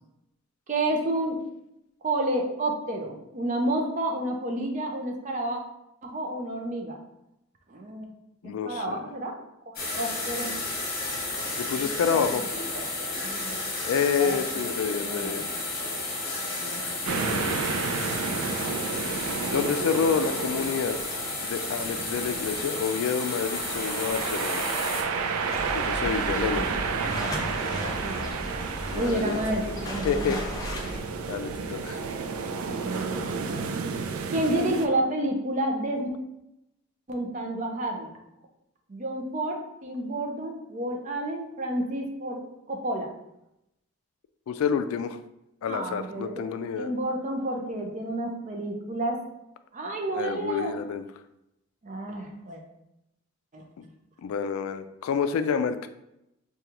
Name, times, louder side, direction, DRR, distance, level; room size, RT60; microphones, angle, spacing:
voice 1, 0.7-1.4 2.0-5.6 6.0-7.0 7.7-8.1 8.4-9.3 9.7-10.5 11.8-12.4 12.7-12.9 13.2-13.6 14.1-14.6 15.0-15.5 16.6-16.8 17.1-17.3 18.5-18.7 26.0-26.7 27.2-28.3 28.9-30.4 32.8-33.7 34.3-36.1 37.1-38.1 38.9-42.4 42.7-43.1 45.6-46.5 46.7-49.2 49.7-50.7 51.8-52.6 53.5-53.6, right 1 dB, 35° right, 2 dB, 0.5 m, -30 dB
voice 2, 8.4-9.0 11.6-12.4 13.9-15.5 17.2-17.6 19.4-21.0 21.4-24.6 25.7-26.8 28.9-29.4 30.0-30.4 30.7-30.8 31.3-32.0 44.5-45.2 45.6-46.9 50.1-51.1 53.8-53.9 54.2-55.9, left 6 dB, 90° left, 10 dB, 0.3 m, -28 dB
sound 1, 9.8-25.0, left 2 dB, 45° left, 1.0 m, -32 dB
sound 2, 17.0-34.9, right 5 dB, 90° right, 0.4 m, -31 dB
sound 3, 25.5-31.0, equal, 20° left, 0.5 m, -35 dB
5.0 x 2.3 x 2.9 m, 0.85 s
head